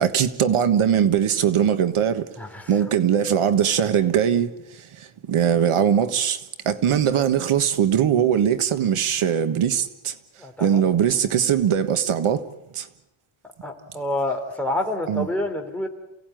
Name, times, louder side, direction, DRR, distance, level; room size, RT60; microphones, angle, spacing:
voice 1, 0.0-2.3 2.7-10.1 10.6-12.4 12.7-12.9 15.1-15.3, right 8 dB, 85° right, 1.5 m, -21 dB
voice 2, 2.4-2.7 10.4-10.9 13.6-15.9, left 1 dB, 5° left, 3.1 m, -28 dB
28.5 x 17.5 x 9.2 m
wide cardioid pair, 160°, 49 cm